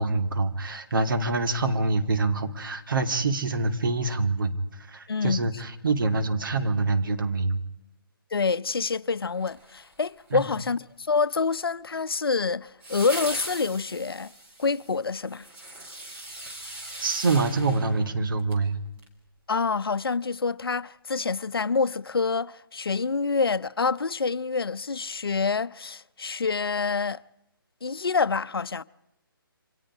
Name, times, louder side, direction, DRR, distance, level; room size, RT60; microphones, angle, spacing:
voice 1, 0.0-7.6 10.3-10.5 17.0-18.8, right 3 dB, 60° right, 2.8 m, -26 dB
voice 2, 5.1-5.4 8.3-14.3 14.6-15.5 19.5-27.2 27.8-28.8, left 4 dB, 75° left, 0.8 m, -27 dB
sound 1, 9.4-10.3 12.8-18.6 19.0-19.1, right 1 dB, 15° right, 3.1 m, -40 dB
28.5 x 25.0 x 5.0 m
figure-of-eight pair, 150°, 12 cm